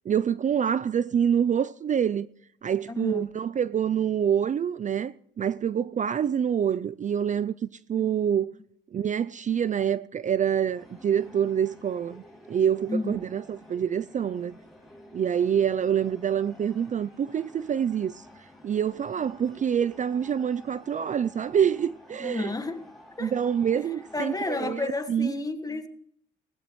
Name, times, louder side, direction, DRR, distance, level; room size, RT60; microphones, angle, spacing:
voice 1, 0.1-2.3 2.6-8.5 8.9-14.5 15.1-18.3 18.6-22.5 23.2-25.3, right 8 dB, 40° right, 0.4 m, -26 dB
voice 2, 2.9-3.3 8.0-8.1 12.9-13.2 22.2-22.8 23.2-23.3 23.7-23.9 24.1-25.9, left 2 dB, 20° left, 1.6 m, -31 dB
sound 1, 10.7-24.5, equal, ahead, 6.2 m, -51 dB
19.0 x 16.0 x 3.1 m
cardioid pair, 90°, 20 cm